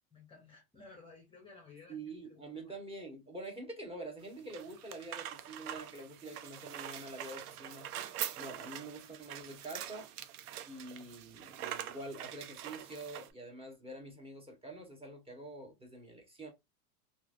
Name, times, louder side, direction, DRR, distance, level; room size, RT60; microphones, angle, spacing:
voice 1, 0.1-2.7, left 4 dB, 10° left, 0.7 m, -56 dB
voice 2, 1.9-7.9 8.4-10.1 10.7-16.5, right 2 dB, 10° right, 1.1 m, -46 dB
sound 1, 4.2-13.3, right 11 dB, 75° right, 0.7 m, -44 dB
3.0 x 2.6 x 2.5 m
supercardioid pair, 125°, 45 cm